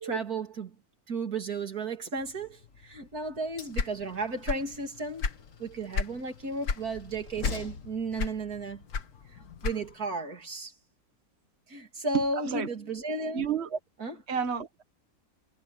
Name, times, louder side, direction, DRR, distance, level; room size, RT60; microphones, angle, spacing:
voice 1, 0.0-0.7 1.1-5.3 5.6-8.8 9.3-10.7 11.7-13.5 14.0-14.2, right 3 dB, 80° right, 3.4 m, -34 dB
Train, 2.2-9.9, left 4 dB, 60° left, 2.0 m, -47 dB
sound 1, 3.7-4.8 5.0-6.2 6.6-6.9 7.4-7.8 8.2-10.1, left 5 dB, 85° left, 1.9 m, -31 dB
voice 2, 12.1-12.7 13.3-13.8 14.3-14.8, right 7 dB, 45° right, 1.8 m, -31 dB
omnidirectional pair, 1.6 m